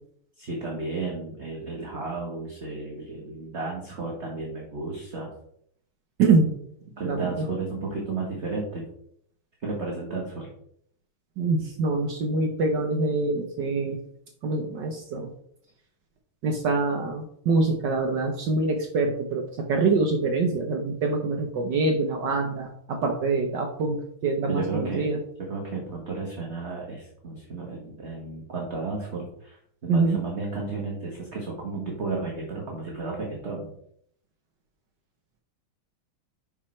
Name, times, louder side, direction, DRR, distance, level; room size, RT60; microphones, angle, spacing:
voice 1, 0.4-5.3 7.0-8.8 9.6-10.5 24.5-25.1 25.5-33.7, right 3 dB, 35° right, -1 dB, 1.3 m, -33 dB
voice 2, 6.2-6.5 7.0-7.5 11.4-14.0 14.4-15.3 16.4-25.2 29.9-30.2, right 3 dB, 65° right, 3 dB, 1.3 m, -25 dB
6.2 x 5.7 x 4.3 m, 0.70 s
omnidirectional pair, 2.4 m